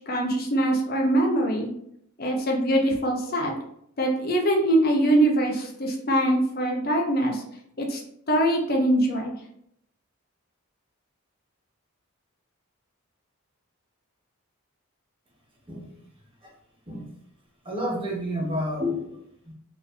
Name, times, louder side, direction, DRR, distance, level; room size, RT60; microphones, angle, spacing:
voice 1, 0.0-1.7 2.2-3.6 4.0-7.4 7.8-8.0 8.3-9.3, right 1 dB, 45° left, 1 dB, 0.8 m, -23 dB
voice 2, 17.6-19.5, equal, 25° right, -1 dB, 0.9 m, -30 dB
4.4 x 3.1 x 3.2 m, 0.71 s
head